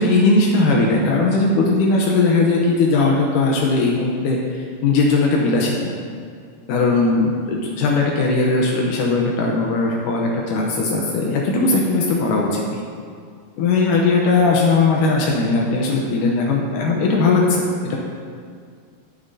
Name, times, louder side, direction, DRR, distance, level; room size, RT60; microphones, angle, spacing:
voice 1, 0.0-5.9 6.7-12.8 13.6-18.0, left 3 dB, 80° left, -1 dB, 2.4 m, -18 dB
18.5 x 6.8 x 2.7 m, 2.1 s
omnidirectional pair, 3.7 m